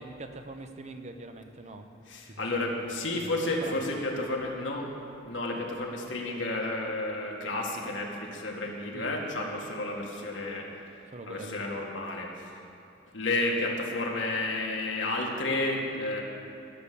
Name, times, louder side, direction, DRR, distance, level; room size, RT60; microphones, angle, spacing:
voice 1, 0.0-1.8 2.3-2.8 3.2-3.8 8.9-9.2 11.1-11.6, right 2 dB, 35° right, 7 dB, 0.7 m, -43 dB
voice 2, 2.1-10.7 11.3-12.5 13.1-16.2, left 2 dB, 75° left, -1 dB, 1.8 m, -31 dB
14.5 x 7.1 x 6.9 m, 2.6 s
head